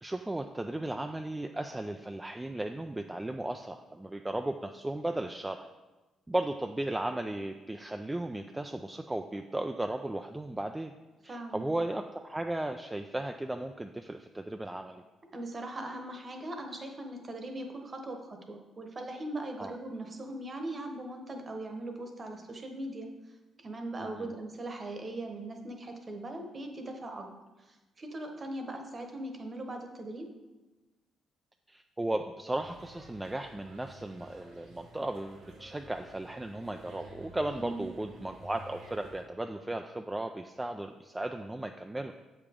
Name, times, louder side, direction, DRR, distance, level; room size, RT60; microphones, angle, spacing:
voice 1, 0.0-5.7 6.3-10.9 11.2-15.0 19.6-19.8 24.0-24.3 31.7-42.1, right 1 dB, 10° right, 5 dB, 0.3 m, -35 dB
voice 2, 11.3-11.7 15.3-23.1 23.6-30.3 37.5-37.9, right 1 dB, 35° right, 4 dB, 1.0 m, -40 dB
sound 1, 32.6-39.2, right 2 dB, 90° right, 1.8 m, -52 dB
7.2 x 5.0 x 3.6 m, 1.2 s
cardioid pair, 90°, 0 cm